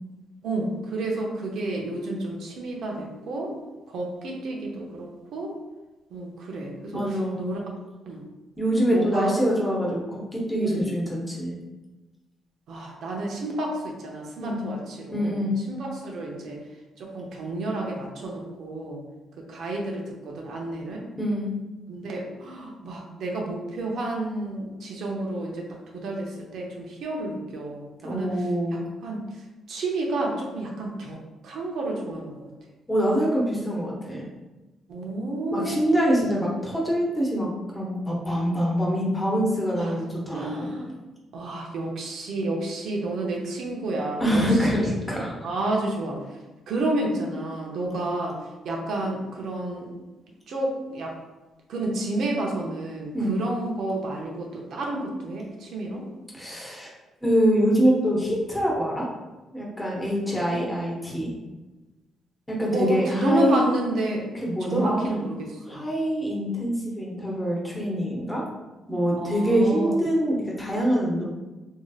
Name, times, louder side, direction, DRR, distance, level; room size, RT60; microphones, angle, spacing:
voice 1, 0.4-3.5 3.9-5.5 6.1-7.6 8.1-8.2 8.9-9.3 10.6-10.9 12.7-16.6 17.0-19.0 19.5-21.0 21.9-25.7 25.9-28.5 29.0-31.2 31.4-32.3 34.9-36.3 39.8-40.0 40.3-40.9 41.3-44.9 45.4-46.4 46.7-48.4 48.6-49.9 50.5-51.1 51.7-56.1 60.5-60.6 62.7-64.3 64.6-65.8 69.2-70.0, right 2 dB, 70° right, -1 dB, 0.6 m, -30 dB
voice 2, 6.9-7.4 8.6-11.5 14.4-14.7 15.1-15.5 21.2-21.5 28.0-28.8 32.9-34.2 35.5-40.7 44.2-45.3 47.9-48.0 53.1-53.4 56.3-56.9 57.2-59.1 59.5-61.3 62.5-63.6 64.4-65.0 65.7-68.4 68.9-71.2, equal, 10° left, -4 dB, 0.9 m, -25 dB
3.1 x 2.7 x 2.3 m, 1.1 s
cardioid pair, 90°, 0 cm